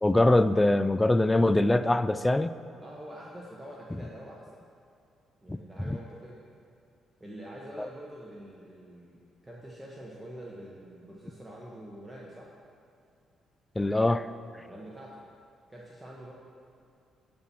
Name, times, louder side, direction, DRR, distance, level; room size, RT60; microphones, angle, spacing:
voice 1, 0.0-2.5 5.5-5.6 5.9-6.0 13.8-14.3, left 2 dB, 15° left, 13 dB, 0.3 m, -23 dB
voice 2, 2.8-4.5 5.4-6.4 7.2-12.5 14.6-15.2 15.7-16.3, right 1 dB, 15° right, -4 dB, 1.2 m, -45 dB
10.5 x 4.4 x 7.1 m, 2.4 s
cardioid pair, 90°, 0 cm